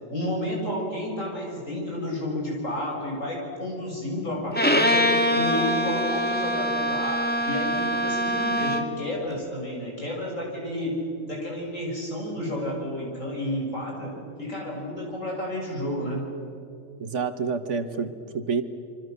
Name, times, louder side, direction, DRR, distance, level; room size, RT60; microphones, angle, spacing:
voice 1, 0.1-11.0 11.2-14.1 14.4-16.2, left 1 dB, 90° left, -2 dB, 7.2 m, -31 dB
Bowed string instrument, 4.5-9.0, equal, 10° left, 1.5 m, -24 dB
voice 2, 17.0-18.6, right 5 dB, 70° right, 9 dB, 1.7 m, -28 dB
27.5 x 24.5 x 6.8 m, 2.6 s
omnidirectional pair, 1.3 m